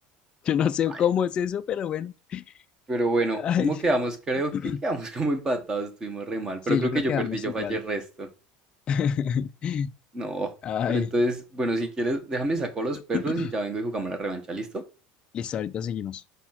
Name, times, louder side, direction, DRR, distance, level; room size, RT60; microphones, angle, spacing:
voice 1, 0.4-2.4 3.3-3.8 4.5-4.8 6.7-7.8 8.9-9.9 10.6-11.1 13.1-13.5 15.3-16.2, left 8 dB, 25° left, 0.3 m, -27 dB
voice 2, 2.9-4.5 4.8-8.3 10.1-10.5 10.9-14.8, right 2 dB, 15° right, 1.2 m, -28 dB
5.3 x 4.1 x 5.7 m
cardioid pair, 165°, 4 cm